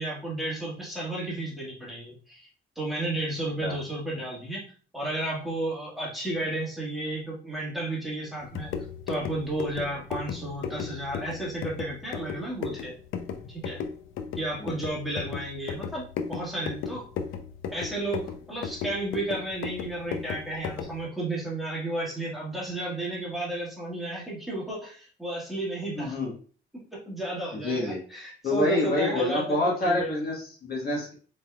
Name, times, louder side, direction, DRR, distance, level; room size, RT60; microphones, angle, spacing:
voice 1, 0.0-2.5 2.8-4.6 4.9-8.7 9.1-12.9 13.5-13.8 14.3-16.0 16.3-17.1 17.7-26.2 27.1-30.2, right 1 dB, ahead, -5 dB, 1.7 m, -32 dB
sound 1, 8.4-21.0, left 6 dB, 90° left, 0.5 m, -36 dB
voice 2, 26.0-26.3 27.5-28.0 28.4-31.1, left 2 dB, 50° left, -2 dB, 1.4 m, -27 dB
4.2 x 3.4 x 2.3 m, 0.40 s
cardioid pair, 90°, 20 cm